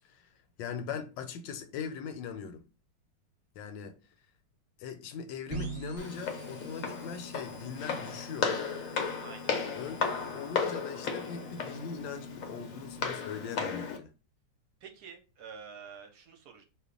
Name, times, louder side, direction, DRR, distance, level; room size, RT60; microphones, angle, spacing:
voice 1, 0.6-2.7 3.6-4.0 4.8-8.6 9.8-10.1 10.3-14.1, left 6 dB, 85° left, 1.3 m, -40 dB
sound 1, 5.5-13.1, right 4 dB, 40° right, 1.2 m, -46 dB
Walk footsteps, 6.0-14.0, left 5 dB, 65° left, 0.8 m, -35 dB
voice 2, 9.2-9.6 14.8-16.6, right 6 dB, 70° right, 1.1 m, -48 dB
2.8 x 2.2 x 3.7 m
omnidirectional pair, 2.0 m